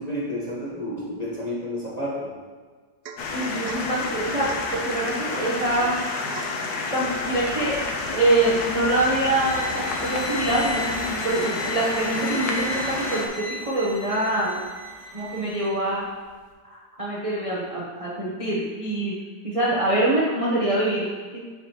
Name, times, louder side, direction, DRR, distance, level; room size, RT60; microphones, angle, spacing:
voice 1, 0.0-2.3, left 1 dB, 25° left, -6 dB, 1.1 m, -30 dB
Domestic sounds home sounds / Chink clink / Drip, 3.0-3.3 3.7-3.9 4.5-4.8 5.3-5.6 6.3-6.6, right 4 dB, 70° right, 0.9 m, -40 dB
sound 1, 3.2-13.3, left 3 dB, 70° left, 1.2 m, -29 dB
voice 2, 3.3-6.0 6.9-14.6 15.1-16.1 16.6-19.2 19.4-21.4, right 2 dB, 30° right, -6 dB, 0.7 m, -25 dB
sound 2, 9.4-15.7, left 1 dB, 90° left, 2.2 m, -36 dB
7.8 x 4.8 x 3.0 m, 1.5 s
omnidirectional pair, 1.9 m